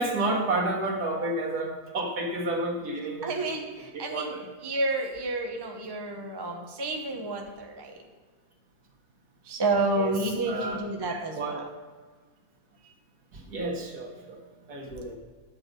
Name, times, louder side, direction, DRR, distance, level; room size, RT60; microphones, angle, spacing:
voice 1, 0.0-3.4 3.9-4.5 10.0-10.1 10.5-11.7 13.3-14.4 14.7-15.2, right 2 dB, 85° right, 0 dB, 2.1 m, -31 dB
voice 2, 3.2-4.3 4.6-7.9 9.5-11.6, right 2 dB, 20° right, 2 dB, 0.7 m, -30 dB
9.7 x 6.8 x 5.1 m, 1.4 s
omnidirectional pair, 1.6 m